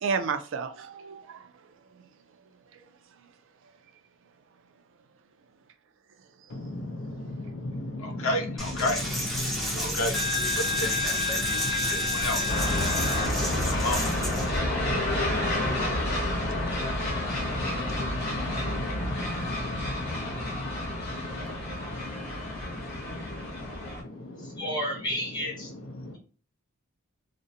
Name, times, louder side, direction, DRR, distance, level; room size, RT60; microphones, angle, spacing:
voice 1, 0.0-2.0 2.7-2.8 9.7-10.1 11.8-12.1 14.8-15.9 18.3-19.4 19.7-19.9, right 5 dB, 65° right, 0.4 m, -36 dB
voice 2, 6.5-24.6 25.9-26.2, left 1 dB, 75° left, 0.6 m, -35 dB
Coin (dropping), 8.6-14.6, left 1 dB, ahead, 0.5 m, -29 dB
sound 1, 12.5-24.0, left 1 dB, 50° left, 0.9 m, -30 dB
voice 3, 24.4-25.7, equal, 20° left, 0.9 m, -32 dB
2.5 x 2.0 x 2.6 m
head